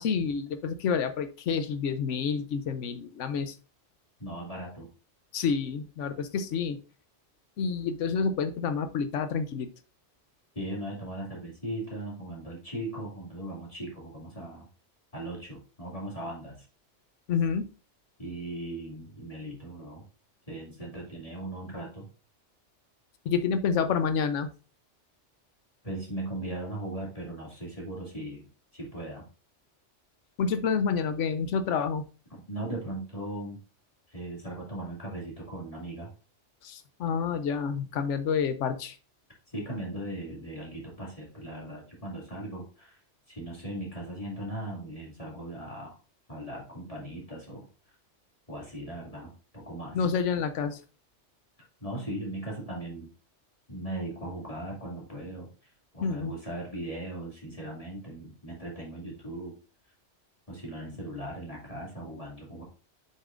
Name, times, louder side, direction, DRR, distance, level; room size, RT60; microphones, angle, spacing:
voice 1, 0.0-3.5 5.3-6.8 7.6-9.7 17.3-17.7 23.2-24.5 30.4-32.0 36.6-39.0 49.9-50.8 56.0-56.3, left 6 dB, 90° left, 10 dB, 1.0 m, -28 dB
voice 2, 4.2-4.9 10.5-14.7 15.1-16.7 18.2-20.1 20.5-22.1 25.8-28.5 28.7-29.2 32.5-33.6 34.1-36.1 39.5-43.0 43.3-46.0 46.3-48.0 48.5-50.0 51.8-53.1 53.7-59.6 60.5-62.6, right 1 dB, 30° left, -4 dB, 2.4 m, -38 dB
7.4 x 6.6 x 2.5 m, 0.35 s
omnidirectional pair, 1.2 m